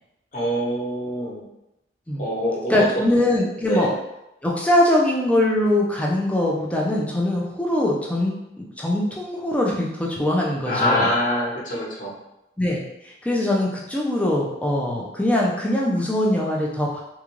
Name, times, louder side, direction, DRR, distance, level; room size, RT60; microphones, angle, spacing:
voice 1, 0.3-1.4 2.2-3.0 3.5-3.9 10.7-12.1, equal, 45° left, -5 dB, 1.0 m, -25 dB
voice 2, 2.7-3.9 4.4-11.1 12.6-17.0, left 1 dB, 5° left, -3 dB, 0.5 m, -22 dB
3.6 x 2.4 x 3.0 m, 0.90 s
head